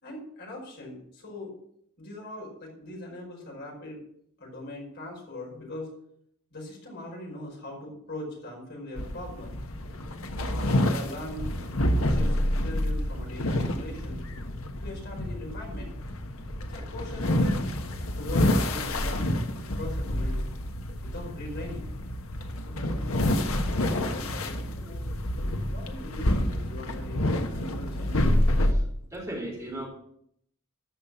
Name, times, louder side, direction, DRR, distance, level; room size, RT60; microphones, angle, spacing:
voice 1, 0.0-1.5 2.0-4.0 4.4-5.9 6.5-9.6 10.4-11.6 12.0-14.2 14.8-15.9 16.7-17.6 18.2-19.5 19.7-20.5 21.0-21.9 22.7-25.1 25.7-28.2, left 1 dB, 50° left, -2 dB, 5.3 m, -41 dB
sound 1, 9.0-28.7, left 1 dB, 70° left, 1.3 m, -28 dB
voice 2, 28.4-29.9, right 1 dB, 15° right, -5 dB, 4.0 m, -38 dB
13.5 x 5.9 x 7.1 m, 0.70 s
head